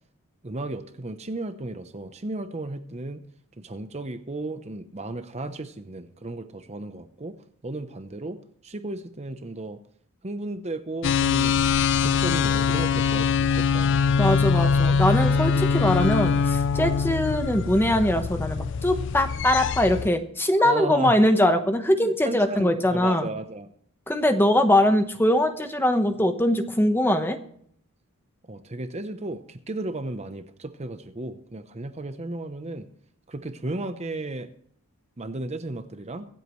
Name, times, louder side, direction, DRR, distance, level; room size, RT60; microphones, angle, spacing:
voice 1, 0.4-3.2 3.6-7.3 7.6-8.4 8.6-9.8 10.2-11.6 12.0-14.0 20.6-21.1 22.0-23.7 28.5-32.8 33.3-34.5 35.2-36.3, right 2 dB, 30° right, 9 dB, 0.7 m, -34 dB
sound 1, 11.0-20.1, left 5 dB, 55° left, 0.4 m, -23 dB
voice 2, 14.2-23.3 24.1-27.4, left 1 dB, 10° left, 7 dB, 1.0 m, -22 dB
24.5 x 8.3 x 3.1 m, 0.66 s
head